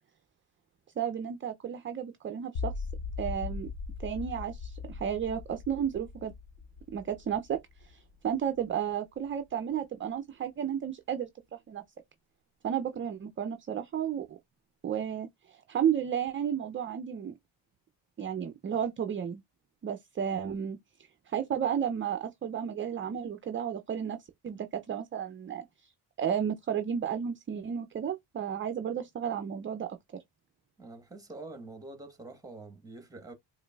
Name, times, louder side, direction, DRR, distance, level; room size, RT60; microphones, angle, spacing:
voice 1, 1.0-2.9 3.2-3.7 4.0-6.3 6.9-11.8 12.6-14.4 14.8-17.4 18.2-19.4 19.8-20.8 21.3-25.9 26.2-30.0, right 8 dB, 30° right, 0.4 m, -33 dB
sound 1, 2.6-8.6, left 5 dB, 65° left, 0.8 m, -39 dB
voice 2, 30.8-33.3, right 2 dB, 5° right, 1.1 m, -46 dB
4.9 x 2.5 x 2.3 m
cardioid pair, 105°, 48 cm